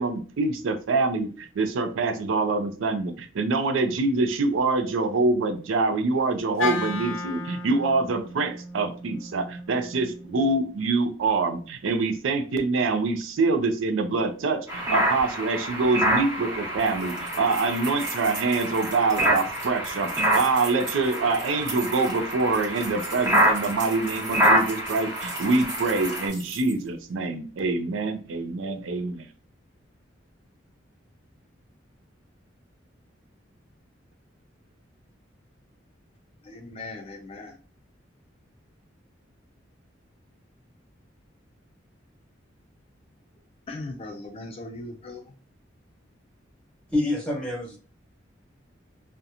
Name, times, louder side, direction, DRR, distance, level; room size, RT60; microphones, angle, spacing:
voice 1, 0.0-29.3, right 3 dB, 90° right, 9 dB, 0.4 m, -25 dB
Wind instrument woodwind instrument, 6.6-10.8, left 3 dB, 85° left, 0.5 m, -34 dB
sound 1, 14.7-26.3, right 1 dB, 20° right, 0.9 m, -27 dB
sound 2, 16.8-26.9, right 3 dB, 60° right, 1.3 m, -41 dB
voice 2, 36.4-37.6 43.7-45.2, left 2 dB, 30° left, 2 dB, 0.3 m, -38 dB
voice 3, 46.9-47.8, left 2 dB, 5° left, -3 dB, 1.1 m, -26 dB
2.8 x 2.1 x 2.4 m, 0.38 s
head